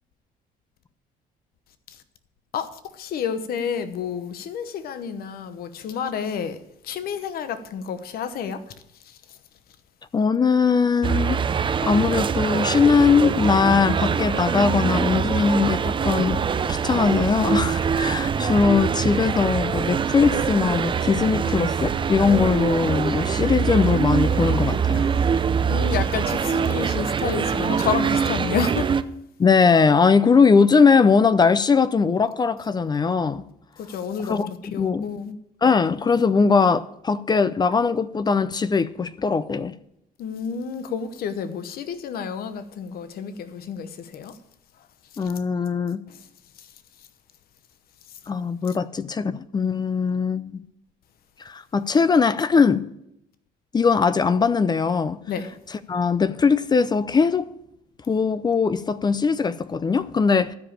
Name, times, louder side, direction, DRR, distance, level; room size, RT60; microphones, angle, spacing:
voice 1, 2.5-6.6 6.8-8.6 9.0-9.4 25.7-28.9 33.8-34.4 34.7-35.4 40.2-44.4 45.2-45.3 46.1-46.3 46.6-46.7 55.3-55.5, left 6 dB, 65° left, 1.0 m, -30 dB
voice 2, 10.1-16.4 16.7-25.1 29.4-33.4 34.3-34.5 34.8-35.1 35.6-39.7 45.2-46.0 48.3-50.6 51.4-52.9 53.7-55.2 55.9-57.5 58.1-60.5, left 5 dB, 25° left, 0.5 m, -20 dB
sound 1, 11.0-29.0, right 6 dB, 30° right, 0.5 m, -24 dB
sound 2, 16.0-26.4, right 9 dB, 90° right, 1.8 m, -42 dB
13.0 x 5.1 x 8.7 m
cardioid pair, 110°, 17 cm